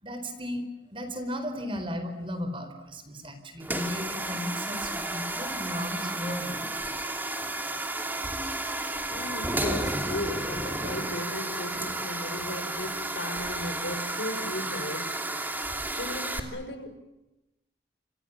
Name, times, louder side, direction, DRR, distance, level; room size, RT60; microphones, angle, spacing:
voice 1, 0.0-6.8, equal, 30° right, 4.5 m, -35 dB
sound 1, 3.6-16.4, right 2 dB, 10° right, 2.8 m, -32 dB
voice 2, 9.1-15.6 16.0-17.0, left 1 dB, 85° left, 5.3 m, -36 dB
29.0 x 27.5 x 7.4 m
head